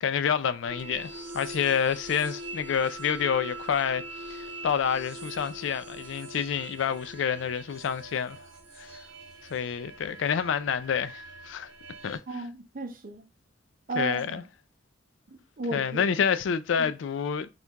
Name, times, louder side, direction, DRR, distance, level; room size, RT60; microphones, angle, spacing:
voice 1, 0.0-8.4 8.8-9.0 9.5-11.7 12.0-12.2 14.0-14.4 15.7-17.5, left 7 dB, 75° left, 0.4 m, -28 dB
sound 1, 0.7-12.2, right 2 dB, 75° right, 0.9 m, -43 dB
voice 2, 12.3-13.3 13.9-14.4 15.3-16.0 16.8-16.9, right 2 dB, 45° right, 0.7 m, -34 dB
4.5 x 2.4 x 3.4 m
head